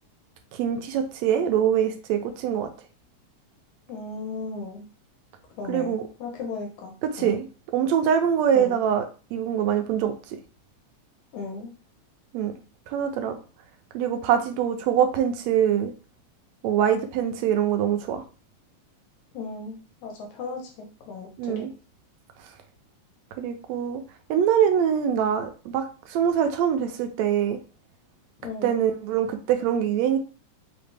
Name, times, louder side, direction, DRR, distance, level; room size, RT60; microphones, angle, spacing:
voice 1, 0.5-2.7 5.7-6.0 7.1-7.5 7.7-9.0 9.3-10.1 12.3-12.5 12.9-13.4 13.9-15.9 16.6-18.2 21.4-21.7 23.4-24.0 24.3-27.6 28.6-30.2, right 9 dB, 80° right, 6 dB, 1.8 m, -23 dB
voice 2, 3.9-4.9 5.6-7.4 8.5-8.8 11.3-11.7 19.3-21.7 28.4-28.8, left 4 dB, 80° left, 1 dB, 2.4 m, -36 dB
5.0 x 3.1 x 3.3 m, 0.35 s
omnidirectional pair, 3.3 m